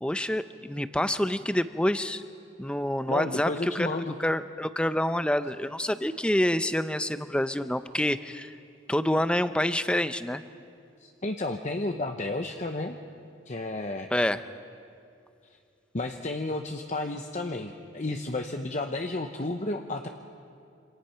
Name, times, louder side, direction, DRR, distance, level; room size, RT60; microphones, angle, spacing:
voice 1, 0.0-2.2 2.6-3.9 4.2-8.6 8.9-10.4 14.1-14.4, left 1 dB, 5° left, 11 dB, 0.6 m, -27 dB
voice 2, 3.1-4.1 11.0-13.0 13.5-14.1 15.9-20.1, left 2 dB, 35° left, 5 dB, 0.8 m, -32 dB
27.5 x 26.5 x 5.7 m, 2.5 s
head